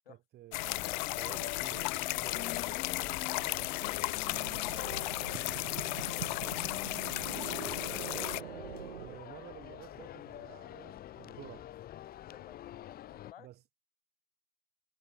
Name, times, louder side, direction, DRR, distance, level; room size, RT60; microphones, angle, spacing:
voice 1, 0.1-3.7 4.2-6.7 7.4-8.1 9.0-11.7 13.4-13.6, right 14 dB, 35° right, 3.2 m, -53 dB
sound 1, 0.5-8.4, left 22 dB, 50° left, 0.7 m, -35 dB
sound 2, 0.7-13.3, left 12 dB, 30° left, 2.7 m, -45 dB
sound 3, 2.5-9.2, right 10 dB, 70° right, 4.8 m, -45 dB
voice 2, 7.5-7.8 8.9-9.1 12.3-13.5, left 11 dB, 70° left, 7.6 m, -56 dB
hypercardioid pair, 100°, 30 cm